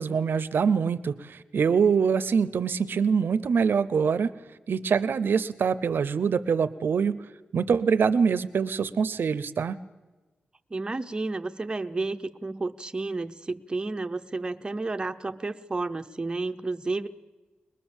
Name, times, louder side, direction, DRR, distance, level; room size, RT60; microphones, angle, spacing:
voice 1, 0.0-4.3 4.7-7.2 7.5-9.8, right 6 dB, 70° right, 16 dB, 0.6 m, -24 dB
voice 2, 10.7-17.1, right 3 dB, 25° right, 7 dB, 0.7 m, -31 dB
22.0 x 20.5 x 7.2 m, 1.2 s
wide cardioid pair, 145°, 4 cm